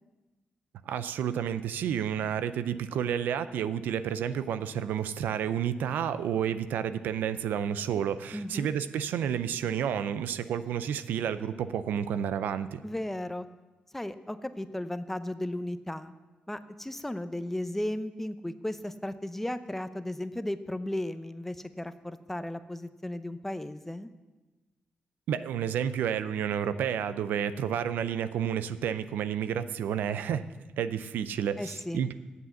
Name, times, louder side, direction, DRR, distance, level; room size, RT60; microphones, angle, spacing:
voice 1, 0.9-12.8 25.3-30.4 30.8-32.1, right 9 dB, 85° right, 13 dB, 0.5 m, -30 dB
voice 2, 8.3-8.7 12.8-13.5 13.9-16.1 16.5-24.1 31.6-32.0, left 1 dB, 10° left, 12 dB, 0.6 m, -35 dB
8.2 x 7.7 x 8.0 m, 1.2 s
cardioid pair, 75°, 3 cm